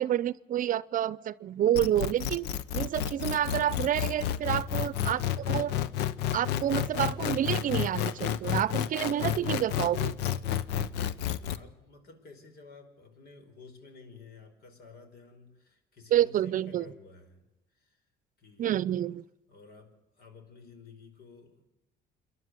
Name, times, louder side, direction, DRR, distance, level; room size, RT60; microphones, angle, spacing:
voice 1, 0.0-5.7 6.3-10.1 16.1-16.8 18.6-19.2, right 11 dB, 50° right, 19 dB, 0.6 m, -29 dB
sound 1, 1.8-11.6, left 10 dB, 90° left, 0.9 m, -30 dB
voice 2, 10.8-17.5 17.7-18.0 18.4-18.8 19.5-21.6, left 4 dB, 65° left, 7 dB, 5.0 m, -52 dB
27.5 x 11.5 x 9.5 m, 0.98 s
cardioid pair, 110°, 17 cm